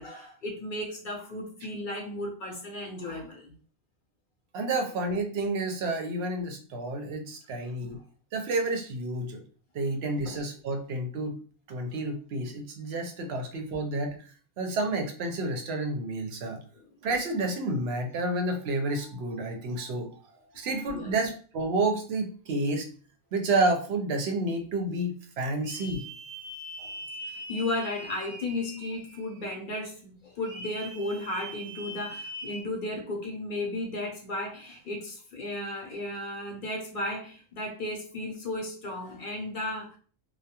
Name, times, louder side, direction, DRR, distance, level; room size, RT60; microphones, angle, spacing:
voice 1, 0.0-3.5 7.6-8.0 10.3-10.4 16.7-16.9 20.9-21.2 26.8-27.0 27.2-40.0, left 1 dB, 55° left, 0 dB, 0.7 m, -35 dB
voice 2, 4.5-8.0 8.3-9.4 9.7-11.3 11.7-14.2 14.6-16.6 17.0-22.8 23.3-26.1, right 2 dB, 75° right, 4 dB, 0.8 m, -30 dB
sound 1, 25.6-29.5 30.4-32.6, equal, 35° right, 0.3 m, -42 dB
2.2 x 2.2 x 2.8 m, 0.41 s
omnidirectional pair, 1.1 m